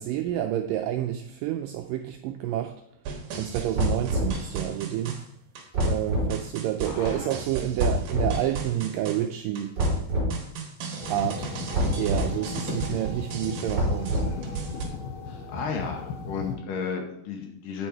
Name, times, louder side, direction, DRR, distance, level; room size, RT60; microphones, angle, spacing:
voice 1, 0.0-2.8 3.3-5.2 5.8-9.8 11.1-11.5 12.0-14.2, right 12 dB, 85° right, 1.9 m, -29 dB
sound 1, 3.1-14.9, right 6 dB, 70° right, 2.9 m, -36 dB
sound 2, 3.7-4.4 5.7-6.3 7.8-8.4 9.8-10.3 11.7-12.3 13.7-14.5, equal, 30° right, 3.2 m, -25 dB
voice 2, 6.8-7.3 15.5-17.9, left 5 dB, 70° left, 2.3 m, -33 dB
sound 3, 11.0-16.6, left 4 dB, 85° left, 3.0 m, -36 dB
8.9 x 6.3 x 4.6 m
omnidirectional pair, 4.4 m